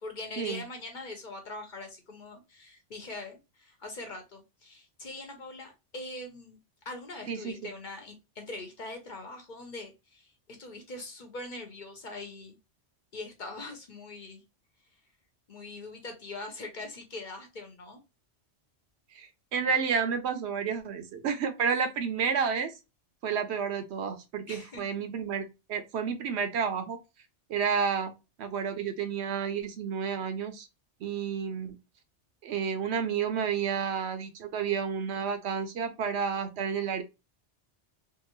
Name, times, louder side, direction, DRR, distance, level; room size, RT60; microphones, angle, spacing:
voice 1, 0.0-6.6 6.8-10.3 10.6-12.6 13.1-14.4 15.5-18.0 24.5-25.0, left 2 dB, 50° left, 0.8 m, -42 dB
voice 2, 19.1-22.7 23.2-27.0 27.5-28.1 28.4-30.7 31.0-31.8 32.4-37.0, right 6 dB, 70° right, 0.8 m, -30 dB
2.7 x 2.5 x 2.9 m
omnidirectional pair, 1.2 m